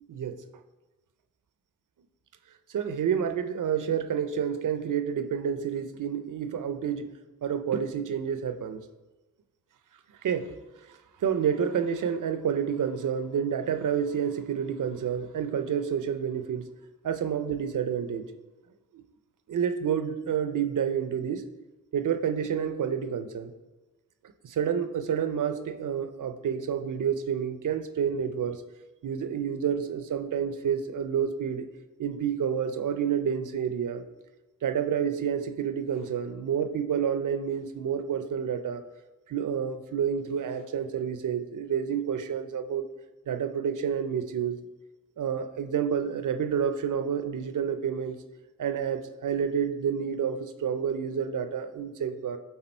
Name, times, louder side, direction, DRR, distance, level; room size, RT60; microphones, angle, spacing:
voice 1, 0.1-0.4 2.7-7.1 7.4-8.8 10.2-10.5 11.2-16.6 17.0-18.3 19.5-21.5 21.9-23.5 24.4-28.6 29.0-31.7 32.0-34.0 34.6-38.8 39.3-42.8 43.3-44.6 45.2-48.2 48.6-52.4, right 8 dB, 65° right, 9 dB, 0.6 m, -29 dB
8.5 x 3.7 x 4.4 m, 1.2 s
supercardioid pair, 45°, 34 cm